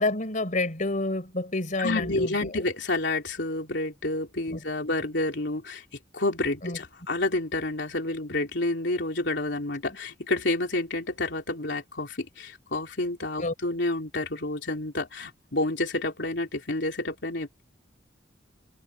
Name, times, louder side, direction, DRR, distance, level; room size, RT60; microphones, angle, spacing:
voice 1, 0.0-2.3 4.5-4.6 6.6-6.8 13.4-13.5, left 2 dB, 45° left, 4.4 m, -28 dB
voice 2, 1.8-5.8 6.1-17.6, left 2 dB, 70° left, 3.6 m, -29 dB
head